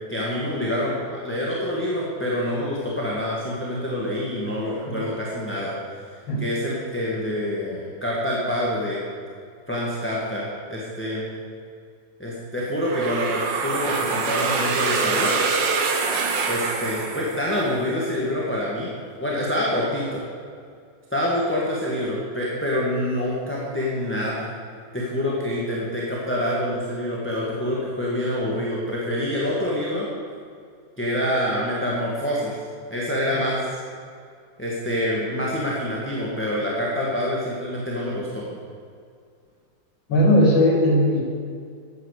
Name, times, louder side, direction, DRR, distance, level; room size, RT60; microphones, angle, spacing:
voice 1, 0.1-5.7 6.4-9.0 9.7-11.3 12.2-15.4 16.5-18.9 19.2-20.2 21.1-24.5 24.9-30.1 31.0-32.6 32.9-33.8 34.6-38.4, left 1 dB, 5° left, -6 dB, 1.7 m, -26 dB
sound 1, 12.9-17.8, right 4 dB, 70° right, 1.7 m, -25 dB
voice 2, 40.1-41.2, left 1 dB, 80° left, 0 dB, 3.0 m, -18 dB
11.5 x 9.2 x 6.7 m, 2.2 s
omnidirectional pair, 2.1 m